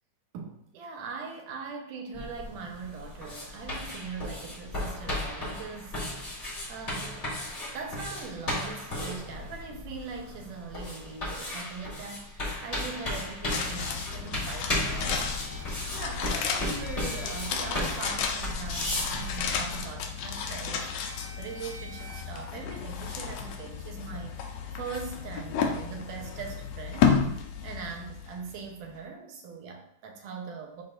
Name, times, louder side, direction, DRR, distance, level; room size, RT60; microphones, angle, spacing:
voice 1, 0.3-6.0 6.7-7.4 7.7-15.4 15.9-24.4 24.7-27.2 27.6-30.8, right 5 dB, 90° right, 2 dB, 2.5 m, -41 dB
sound 1, 2.1-19.8, left 1 dB, 25° left, 2.4 m, -35 dB
sound 2, 13.5-28.7 29.0-29.1, left 6 dB, 75° left, 1.8 m, -32 dB
sound 3, 14.8-15.6 16.8-17.8 18.9-19.8 21.0-22.2, left 1 dB, 65° right, 2.8 m, -46 dB
10.5 x 3.8 x 2.5 m, 0.72 s
omnidirectional pair, 3.6 m